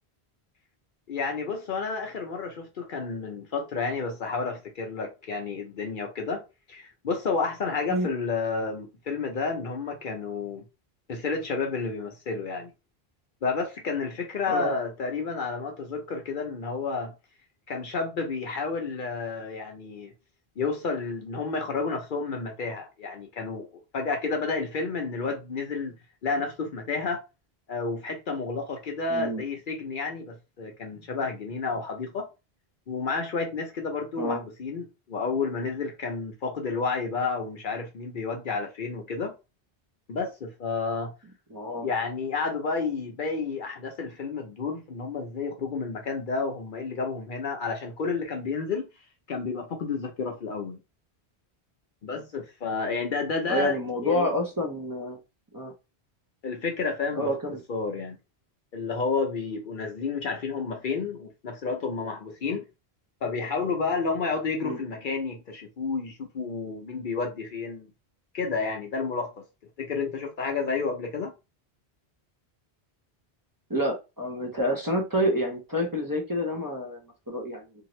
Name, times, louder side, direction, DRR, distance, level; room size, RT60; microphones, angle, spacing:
voice 1, 1.1-6.4 6.7-10.6 11.1-12.7 13.4-17.1 17.7-20.1 20.6-23.7 23.9-25.9 26.2-27.2 27.7-32.3 32.9-39.3 40.1-41.1 41.8-48.9 49.3-50.8 52.0-53.8 54.0-54.3 56.4-57.3 57.7-58.2 58.7-62.6 63.2-67.9 68.3-69.4 69.8-71.3, left 4 dB, 55° left, 0.7 m, -30 dB
voice 2, 29.1-29.4 34.2-34.4 41.5-41.9 53.5-55.2 55.5-55.7 57.1-57.6 64.6-64.8 73.7-77.0 77.3-77.6, equal, 20° right, 0.7 m, -28 dB
2.7 x 2.5 x 3.0 m
omnidirectional pair, 1.1 m